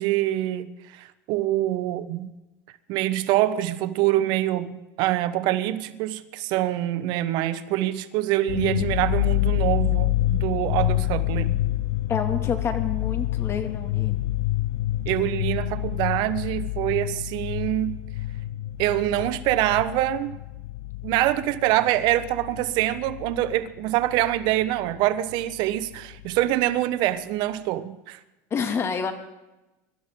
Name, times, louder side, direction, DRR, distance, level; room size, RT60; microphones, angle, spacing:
voice 1, 0.0-2.3 2.9-11.6 15.1-18.0 18.8-20.4 21.0-28.2, right 14 dB, 60° right, 1.0 m, -25 dB
sound 1, 8.5-23.6 23.8-25.0 25.3-25.4 25.8-26.4, left 15 dB, 80° left, 0.5 m, -27 dB
voice 2, 12.1-14.2 28.5-29.1, left 6 dB, 30° left, 2.4 m, -28 dB
24.5 x 13.0 x 3.8 m
supercardioid pair, 120°, 8 cm